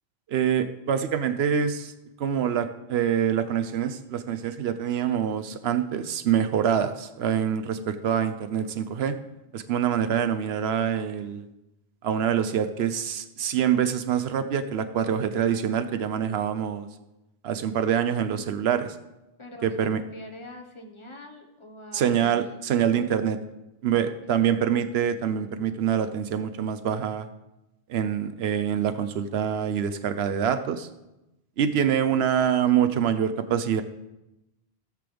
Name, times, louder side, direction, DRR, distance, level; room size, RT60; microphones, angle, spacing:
voice 1, 0.3-1.9 2.2-9.2 9.5-11.5 12.0-16.9 17.4-19.0 19.6-20.0 21.9-23.4 23.8-27.3 27.9-30.9 31.6-33.8, right 8 dB, 85° right, 10 dB, 0.9 m, -25 dB
voice 2, 19.4-22.4 22.9-23.5 23.9-24.5, left 1 dB, 30° left, 2 dB, 1.4 m, -45 dB
16.5 x 7.6 x 3.4 m, 0.95 s
omnidirectional pair, 1.0 m